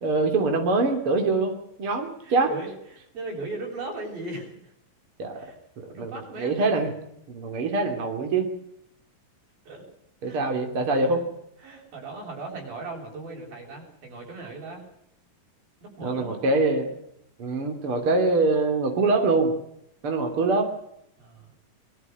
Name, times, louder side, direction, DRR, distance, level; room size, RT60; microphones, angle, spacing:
voice 1, 0.0-1.5 1.8-2.5 5.2-5.5 5.8-6.1 6.4-6.9 7.3-8.5 10.2-11.2 16.0-16.9 17.4-19.5 20.0-20.7, right 3 dB, 40° right, 4 dB, 3.4 m, -24 dB
voice 2, 2.2-4.7 5.3-5.6 5.9-6.7 9.7-9.8 10.2-10.4 10.9-11.2 11.6-14.9 15.8-16.4 21.2-21.5, right 3 dB, 75° right, 1 dB, 8.9 m, -38 dB
23.0 x 13.5 x 9.3 m, 0.75 s
omnidirectional pair, 4.1 m